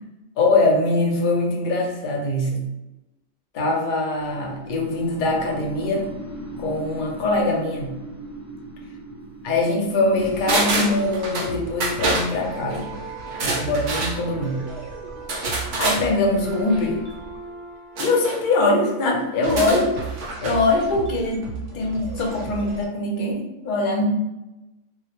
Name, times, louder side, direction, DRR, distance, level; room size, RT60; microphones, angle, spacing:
voice 1, 0.4-2.7 3.5-6.1 6.6-7.9 9.4-12.9 13.4-14.6 15.8-17.0 18.0-19.9 20.4-21.5 21.7-24.1, left 2 dB, 55° left, 0 dB, 0.6 m, -22 dB
sound 1, 4.2-14.1, right 1 dB, 5° right, 0.6 m, -39 dB
sound 2, 10.1-22.9, right 4 dB, 80° right, 0.9 m, -36 dB
sound 3, 10.5-11.5 11.8-12.3 13.3-14.2 15.3-16.0 18.0-18.4 19.4-20.6 20.9-21.0, right 2 dB, 55° right, 0.6 m, -25 dB
2.1 x 2.0 x 2.9 m, 0.98 s
omnidirectional pair, 1.2 m